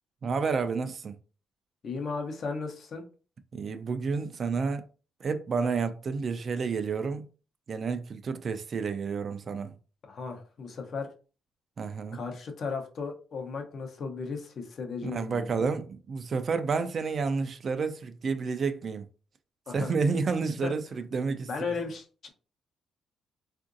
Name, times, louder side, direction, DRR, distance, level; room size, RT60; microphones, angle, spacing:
voice 1, 0.2-1.2 3.5-4.8 5.2-7.3 7.7-9.7 11.8-12.2 15.0-19.0 19.7-21.5, right 5 dB, 45° right, 0.4 m, -30 dB
voice 2, 1.8-3.0 10.1-11.1 12.1-15.7 19.7-19.9 20.6-20.7 21.5-22.3, left 4 dB, 55° left, 0.7 m, -35 dB
3.6 x 2.5 x 2.5 m
cardioid pair, 90°, 0 cm